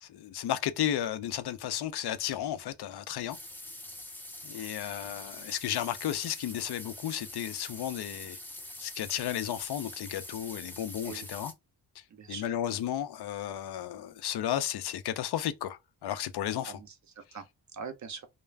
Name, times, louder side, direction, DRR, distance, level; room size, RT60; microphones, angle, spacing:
voice 1, 0.0-3.4 4.4-8.4 8.8-11.5 12.3-16.8, left 11 dB, 65° left, 0.5 m, -33 dB
sound 1, 3.3-11.5, left 1 dB, 5° left, 0.5 m, -44 dB
voice 2, 12.1-12.5 16.7-17.4 17.7-18.3, right 5 dB, 45° right, 0.6 m, -43 dB
2.3 x 2.0 x 3.2 m
wide cardioid pair, 115°, 42 cm